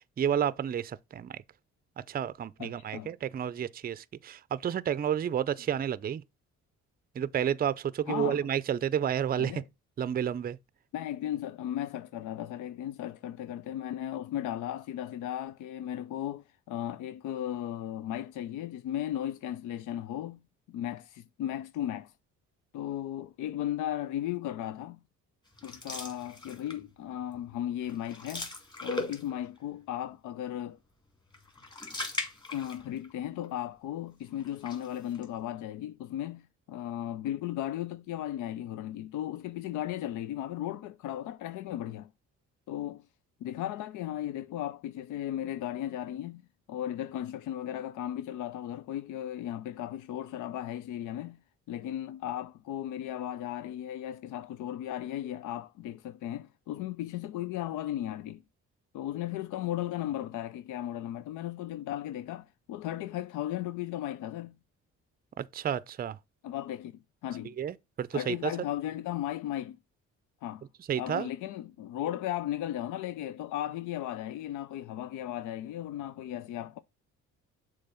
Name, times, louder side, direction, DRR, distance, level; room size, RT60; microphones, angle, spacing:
voice 1, 0.0-1.3 2.1-6.2 7.2-9.5 10.0-10.6 65.4-66.2 67.6-68.5 70.9-71.3, right 9 dB, 30° right, 0.4 m, -31 dB
voice 2, 2.6-3.1 8.1-8.5 9.4-9.7 10.9-20.4 20.7-22.1 22.7-25.0 25.6-28.5 28.8-30.8 32.5-42.1 42.7-43.1 43.4-51.4 51.7-58.4 58.9-64.6 66.4-66.9 67.2-67.5 68.1-69.8 70.4-70.7 71.0-76.8, left 12 dB, 85° left, 0.5 m, -36 dB
sound 1, 25.6-26.9 27.3-27.5 27.8-29.6 31.3-33.1 33.4-33.5 34.4-35.2, left 1 dB, 15° left, 2.3 m, -39 dB
6.8 x 3.4 x 5.5 m
cardioid pair, 90°, 30 cm